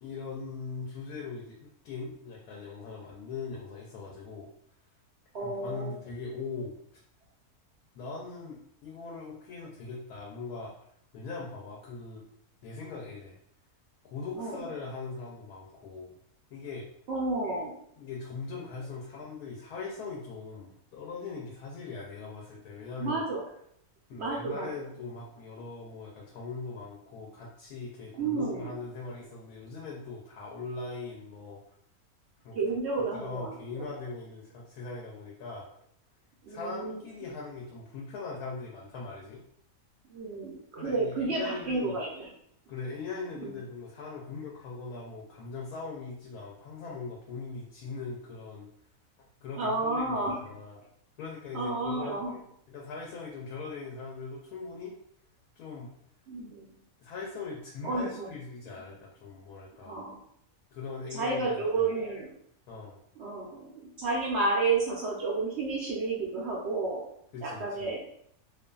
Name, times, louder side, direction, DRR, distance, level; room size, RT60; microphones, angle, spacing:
voice 1, 0.0-4.5 5.4-6.8 7.9-10.7 11.1-12.2 12.6-13.4 14.1-16.2 16.5-16.9 18.0-23.2 24.1-31.6 32.4-32.6 33.1-35.7 36.5-39.4 40.8-42.0 42.7-48.7 49.4-50.8 51.2-52.2 52.7-54.9 55.6-55.9 57.0-60.0 60.7-61.9 62.7-63.0 67.3-67.8, left 4 dB, 80° left, -3 dB, 1.1 m, -40 dB
voice 2, 5.3-5.9 14.3-14.6 17.1-17.7 23.0-23.4 24.2-24.7 28.2-28.7 32.5-33.9 36.4-37.0 40.1-42.3 43.4-43.5 49.6-50.4 51.5-52.3 56.3-56.7 57.8-58.3 59.8-60.2 61.1-62.3 63.2-67.0 67.4-68.1, right 3 dB, 70° right, -3 dB, 0.6 m, -31 dB
2.5 x 2.4 x 2.2 m, 0.68 s
omnidirectional pair, 1.6 m